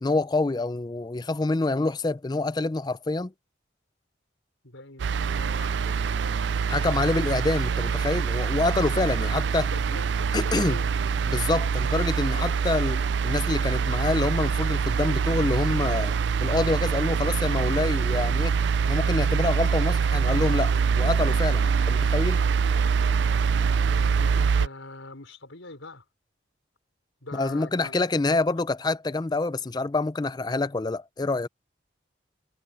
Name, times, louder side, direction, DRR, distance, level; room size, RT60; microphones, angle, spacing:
voice 1, 0.0-3.3 6.7-9.7 10.3-10.8 11.3-16.1 16.4-18.5 18.9-22.4 27.3-31.5, left 2 dB, 20° left, 0.4 m, -26 dB
voice 2, 4.6-6.6 9.2-11.0 12.2-12.6 23.6-26.0 27.2-28.4, left 2 dB, 85° left, 5.1 m, -44 dB
sound 1, 5.0-24.7, right 6 dB, 65° right, 0.4 m, -24 dB
head